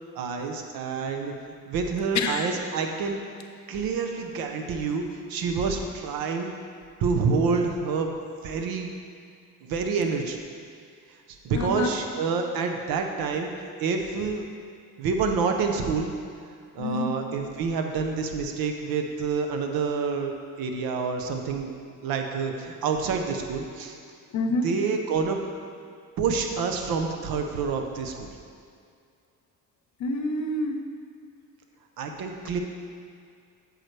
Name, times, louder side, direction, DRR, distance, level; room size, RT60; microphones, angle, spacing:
voice 1, 0.2-1.3 1.7-3.2 3.7-6.5 7.0-8.1 8.4-8.9 9.6-10.4 11.4-14.5 15.0-16.1 16.7-21.7 22.0-24.0 24.6-25.4 26.2-28.3 32.0-32.6, right 5 dB, 80° right, 4 dB, 0.8 m, -28 dB
voice 2, 2.1-2.5 4.7-4.8 11.5-11.9 16.8-17.1 24.3-24.7 30.0-30.8, left 2 dB, 55° left, 5 dB, 0.7 m, -27 dB
8.7 x 6.6 x 3.3 m, 2.3 s
cardioid pair, 135°, 35 cm